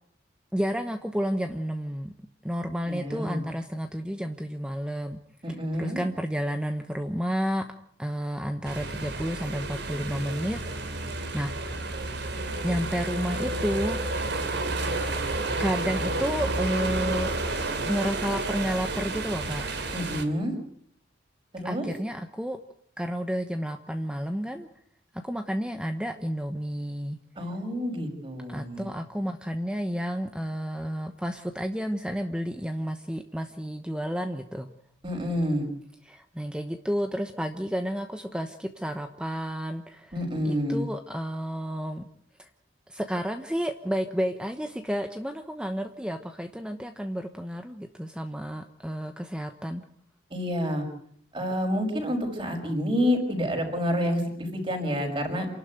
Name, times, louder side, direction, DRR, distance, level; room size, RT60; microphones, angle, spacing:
voice 1, 0.5-2.1 2.4-5.2 5.8-7.7 8.0-11.1 11.3-12.0 12.6-14.0 15.6-17.3 17.8-19.7 21.6-22.6 23.0-24.7 25.2-27.2 28.5-34.7 36.1-40.1 40.4-42.1 42.4-42.5 42.9-49.8, equal, 5° right, 6 dB, 1.0 m, -31 dB
voice 2, 2.9-3.4 5.4-6.0 19.9-20.5 21.5-21.9 27.4-28.9 35.0-35.7 40.1-40.8 50.3-50.9 51.3-55.5, equal, 25° right, 3 dB, 5.7 m, -28 dB
sound 1, 8.6-20.2, right 2 dB, 60° right, 3.1 m, -31 dB
28.0 x 12.0 x 9.3 m, 0.65 s
head